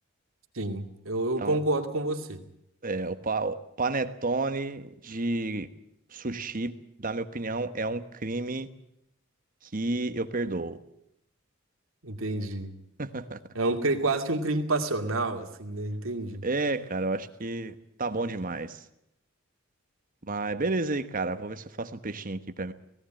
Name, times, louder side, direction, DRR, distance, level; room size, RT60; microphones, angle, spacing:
voice 1, 0.5-2.4 12.0-12.7 13.5-16.4, right 2 dB, 85° right, 4 dB, 2.4 m, -29 dB
voice 2, 2.8-5.7 6.1-8.7 9.6-10.8 13.0-13.4 16.4-18.8 20.3-22.7, right 3 dB, 45° right, 10 dB, 1.2 m, -31 dB
18.5 x 17.0 x 8.9 m, 0.78 s
head